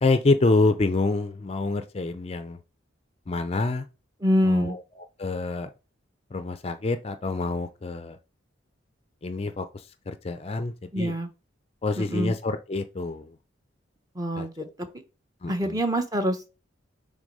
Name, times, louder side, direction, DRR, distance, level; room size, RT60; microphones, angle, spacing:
voice 1, 0.0-2.6 3.3-3.8 4.4-5.7 6.3-8.2 9.2-11.1 11.8-13.4 14.4-14.5 15.4-15.8, left 3 dB, 30° left, 0.4 m, -27 dB
voice 2, 4.2-4.8 10.9-11.3 12.0-12.3 14.1-14.7 15.5-16.5, equal, 20° right, 0.8 m, -25 dB
6.3 x 3.7 x 5.3 m
head